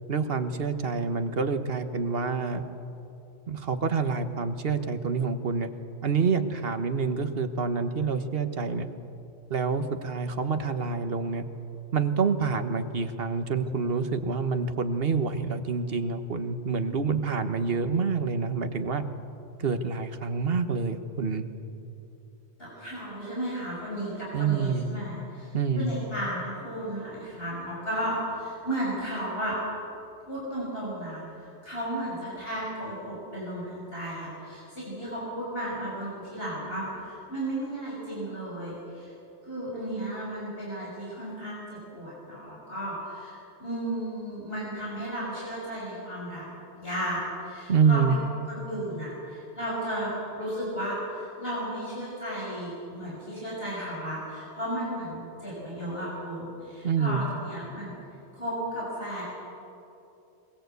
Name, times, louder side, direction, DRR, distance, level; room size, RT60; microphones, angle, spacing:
voice 1, 0.1-2.6 3.5-5.7 6.0-8.9 9.5-11.4 11.9-19.0 19.6-21.4 24.3-24.8 25.5-25.9 47.7-48.2 56.8-57.2, right 5 dB, 60° right, 8 dB, 1.4 m, -27 dB
voice 2, 22.6-25.5 25.7-29.6 30.3-39.1 39.4-46.4 46.7-48.0 48.5-57.9 58.3-59.2, right 1 dB, 60° left, -6 dB, 6.8 m, -34 dB
22.0 x 21.5 x 8.3 m, 2.8 s
omnidirectional pair, 1.1 m